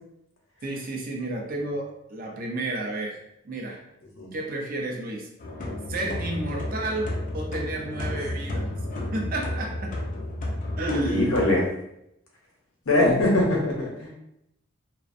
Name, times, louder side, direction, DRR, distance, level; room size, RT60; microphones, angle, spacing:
voice 1, 0.6-3.2 3.4-3.8 4.3-5.3 5.9-8.7 9.1-10.0 10.8-11.3, right 2 dB, 45° right, 0 dB, 0.4 m, -31 dB
sound 1, 5.4-11.7, left 1 dB, 40° left, 0.4 m, -32 dB
voice 2, 11.0-11.7 12.9-14.1, left 1 dB, 75° left, -2 dB, 0.7 m, -22 dB
2.4 x 2.1 x 2.5 m, 0.81 s
head